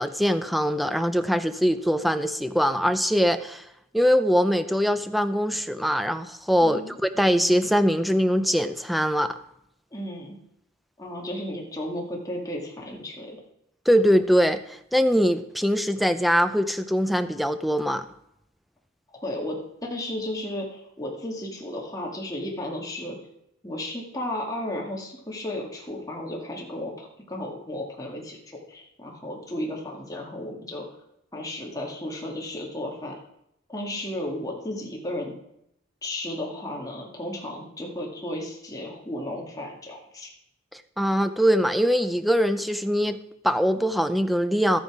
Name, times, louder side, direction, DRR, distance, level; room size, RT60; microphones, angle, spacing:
voice 1, 0.0-3.6 3.9-9.4 13.9-18.1 40.7-44.8, equal, ahead, 10 dB, 0.5 m, -22 dB
voice 2, 6.6-7.0 9.9-10.4 11.0-13.4 19.1-23.2 23.6-30.8 31.3-33.2 33.7-35.4 36.0-40.3, left 1 dB, 20° left, -1 dB, 2.0 m, -34 dB
12.5 x 9.3 x 4.9 m, 0.77 s
head